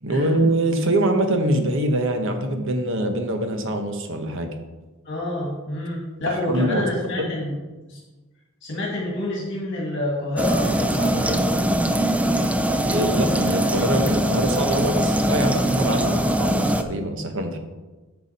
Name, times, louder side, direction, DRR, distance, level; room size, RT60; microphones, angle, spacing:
voice 1, 0.0-4.5 6.3-6.8 7.2-7.3 12.8-16.1 16.4-17.6, right 1 dB, 60° right, 6 dB, 1.0 m, -23 dB
voice 2, 5.0-7.6 7.9-8.0 8.6-11.4 16.0-16.2, left 1 dB, 55° left, -3 dB, 1.9 m, -28 dB
sound 1, 10.4-16.8, right 1 dB, 5° right, 0.3 m, -22 dB
9.2 x 6.1 x 4.2 m, 1.2 s
head